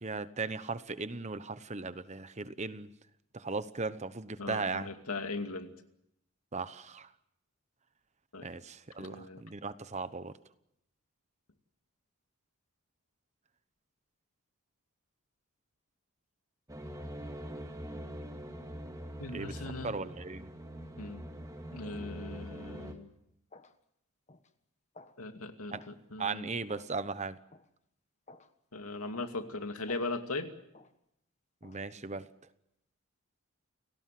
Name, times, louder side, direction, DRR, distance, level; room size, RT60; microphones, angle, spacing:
voice 1, 0.0-2.9 3.3-4.9 6.5-7.1 8.4-10.3 19.3-19.5 19.8-20.5 25.7-25.8 26.2-27.4 31.6-32.3, right 4 dB, 30° right, 13 dB, 1.0 m, -37 dB
voice 2, 4.4-5.7 8.3-8.5 9.0-9.4 19.2-20.0 21.0-21.2 21.7-23.1 25.2-26.6 28.7-30.5, left 3 dB, 85° left, 6 dB, 2.5 m, -39 dB
sound 1, 16.7-22.9, equal, 15° right, 2.3 m, -43 dB
sound 2, 22.8-22.9 23.5-23.8 24.3-24.5 24.9-25.2 25.7-26.0 26.7-26.9 27.5-27.7 28.3-28.5 29.1-29.4 29.9-30.1 30.7-30.9 31.6-31.8, left 3 dB, 30° left, 1.3 m, -54 dB
29.5 x 18.0 x 7.7 m, 0.80 s
head